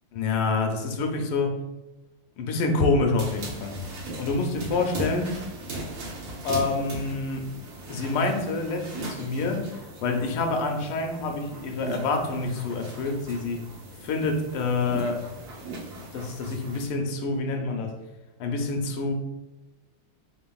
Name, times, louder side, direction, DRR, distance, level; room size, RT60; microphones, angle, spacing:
voice 1, 0.1-1.6 2.4-5.4 6.4-7.5 7.9-13.6 14.0-15.2 16.0-17.9 18.4-19.1, left 3 dB, 85° left, 3 dB, 1.5 m, -27 dB
sound 1, 3.2-16.9, right 1 dB, 65° right, 1.4 m, -38 dB
4.0 x 3.8 x 2.3 m, 1.0 s
omnidirectional pair, 2.4 m